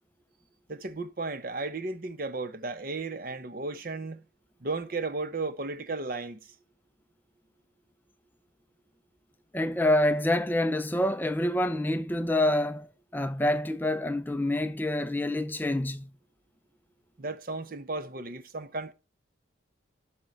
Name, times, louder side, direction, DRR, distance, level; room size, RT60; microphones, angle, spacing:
voice 1, 0.7-4.2 4.6-6.5 17.2-18.9, right 3 dB, 45° right, 0.8 m, -34 dB
voice 2, 9.5-12.9 13.1-16.1, left 1 dB, 10° left, 0.4 m, -27 dB
12.0 x 4.4 x 5.4 m
head